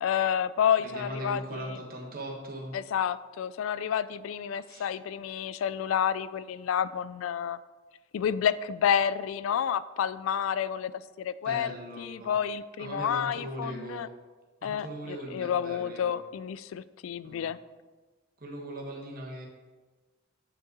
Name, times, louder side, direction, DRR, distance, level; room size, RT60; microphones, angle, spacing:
voice 1, 0.0-1.8 2.7-7.6 8.1-10.9 11.2-11.7 12.0-14.1 14.6-17.6, left 8 dB, 85° left, 17 dB, 0.3 m, -29 dB
voice 2, 0.8-2.7 4.6-4.9 11.4-12.3 12.8-14.1 14.6-16.1 17.2-17.5 18.4-19.5, right 1 dB, 45° right, -1 dB, 1.6 m, -39 dB
8.5 x 5.5 x 4.0 m, 1.3 s
head